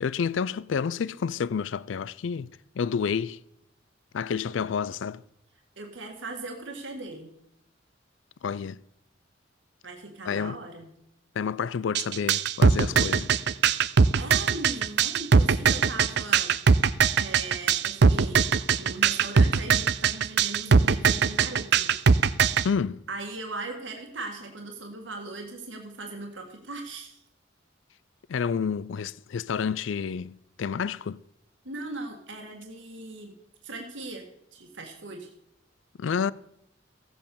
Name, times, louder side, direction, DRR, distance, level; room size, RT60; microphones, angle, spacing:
voice 1, 0.0-2.5 2.8-3.4 4.1-5.2 8.4-8.8 10.2-10.6 11.4-13.3 22.6-23.0 28.3-31.2 36.0-36.3, left 6 dB, 85° left, 0.4 m, -29 dB
voice 2, 5.8-7.3 9.8-10.9 14.2-16.5 17.2-18.4 18.8-21.9 23.1-27.2 31.7-33.3 33.6-34.3 34.5-35.3, right 2 dB, 80° right, 1.8 m, -39 dB
sound 1, 11.9-22.6, right 6 dB, 60° right, 0.5 m, -20 dB
15.5 x 7.8 x 6.9 m
head